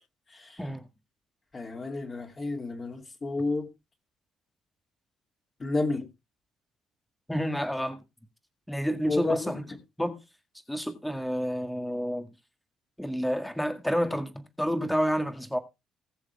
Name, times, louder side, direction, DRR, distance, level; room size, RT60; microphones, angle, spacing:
voice 1, 1.5-3.7 5.6-6.1 9.1-9.6, left 3 dB, 25° left, 2.7 m, -30 dB
voice 2, 7.3-8.0 8.7-9.5 10.0-10.2 10.7-12.3 13.0-15.6, equal, ahead, 1.8 m, -29 dB
19.5 x 6.7 x 3.5 m
cardioid pair, 145°, 0 cm